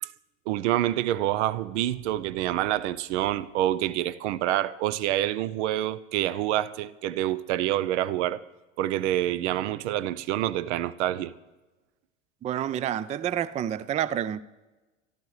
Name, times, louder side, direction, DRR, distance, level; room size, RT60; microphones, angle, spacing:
voice 1, 0.5-8.4 8.8-11.3, right 13 dB, 65° right, 0.7 m, -27 dB
voice 2, 12.4-14.4, right 10 dB, 20° right, 0.4 m, -29 dB
27.0 x 12.0 x 3.2 m
hypercardioid pair, 80°, 37 cm